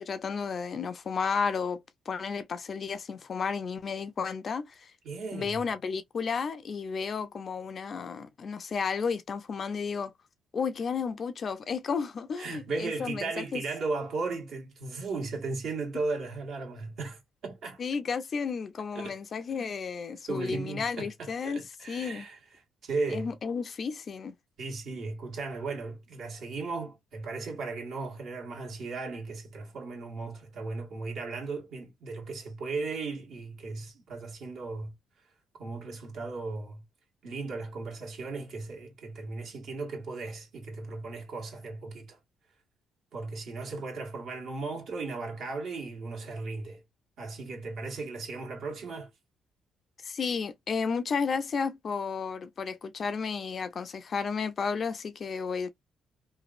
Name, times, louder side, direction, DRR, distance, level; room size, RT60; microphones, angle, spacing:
voice 1, 0.0-4.9 5.3-10.1 10.5-13.6 17.8-21.6 21.9-22.3 23.1-24.3 50.0-55.7, left 5 dB, 50° left, 0.5 m, -32 dB
voice 2, 5.0-5.6 12.4-17.8 18.9-19.2 20.3-23.3 24.6-34.9 35.5-36.8 37.2-42.2 43.1-46.8 47.2-49.1, right 3 dB, 70° right, 1.3 m, -36 dB
3.1 x 2.4 x 2.4 m
cardioid pair, 90°, 0 cm